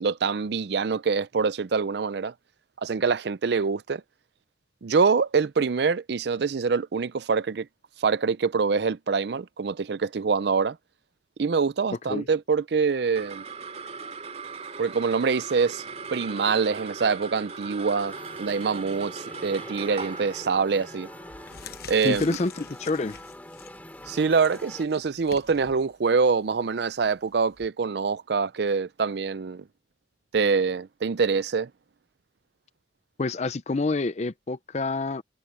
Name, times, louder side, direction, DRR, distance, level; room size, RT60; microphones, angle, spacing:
voice 1, 0.0-2.3 2.8-4.0 4.8-7.7 8.0-10.8 11.4-13.4 14.8-15.8 16.1-21.1 21.9-22.4 24.1-29.6 30.3-31.7, right 5 dB, 60° right, 0.5 m, -25 dB
sound 1, 12.9-23.5, right 4 dB, 35° right, 3.1 m, -39 dB
sound 2, 18.1-24.9, left 1 dB, 10° left, 3.4 m, -45 dB
sound 3, 20.4-20.7 21.2-27.7, left 6 dB, 55° left, 1.2 m, -47 dB
voice 2, 22.0-23.2 33.2-35.2, left 3 dB, 35° left, 0.5 m, -27 dB
head